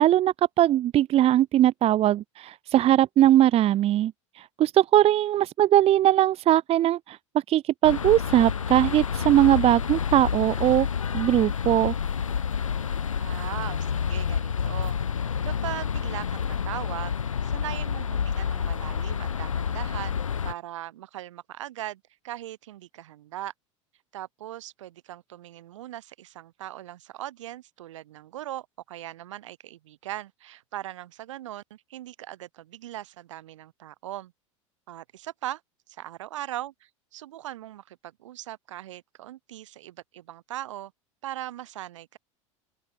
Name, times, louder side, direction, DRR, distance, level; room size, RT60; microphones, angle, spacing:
voice 1, 0.0-7.2 7.5-10.9 11.1-11.9, right 13 dB, 35° right, 1.5 m, -20 dB
sound 1, 7.8-20.5, left 7 dB, 85° left, 0.9 m, -29 dB
voice 2, 13.2-15.0 15.4-20.2 20.4-23.5 24.1-34.3 34.9-35.6 35.9-40.9 41.2-42.2, right 13 dB, 65° right, 7.3 m, -39 dB
open air
figure-of-eight pair, 80°, 17 cm